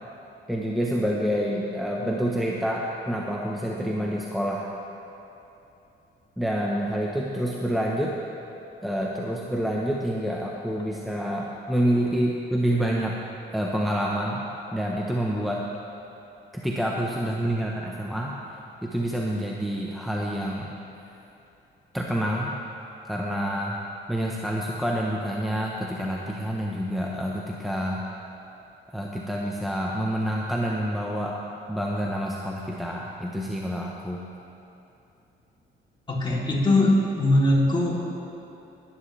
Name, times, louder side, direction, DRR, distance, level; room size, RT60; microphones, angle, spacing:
voice 1, 0.5-4.7 6.4-8.2 8.8-13.2 13.5-14.5 14.7-15.6 16.5-18.4 18.8-20.7 21.9-22.6 23.0-23.8 24.1-28.1 28.9-31.4 31.7-34.2, equal, ahead, -3 dB, 1.0 m, -27 dB
voice 2, 36.1-38.0, left 1 dB, 25° left, -5 dB, 3.4 m, -21 dB
19.5 x 10.0 x 3.4 m, 2.9 s
cardioid pair, 90°, 20 cm